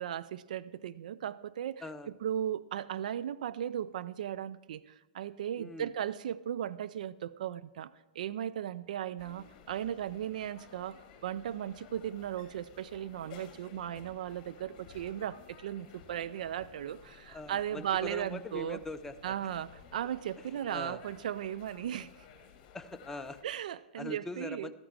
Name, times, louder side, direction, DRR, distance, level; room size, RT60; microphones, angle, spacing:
voice 1, 0.0-1.8 2.2-18.8 19.2-22.1 23.4-24.7, right 10 dB, 60° right, 14 dB, 0.5 m, -37 dB
voice 2, 5.6-5.9 17.3-19.5 20.7-21.0 22.7-23.4 24.0-24.7, left 2 dB, 10° left, 9 dB, 0.6 m, -42 dB
sound 1, 9.2-23.4, left 7 dB, 40° left, 1.7 m, -55 dB
13.5 x 13.0 x 3.5 m, 1.1 s
figure-of-eight pair, 110°, 5 cm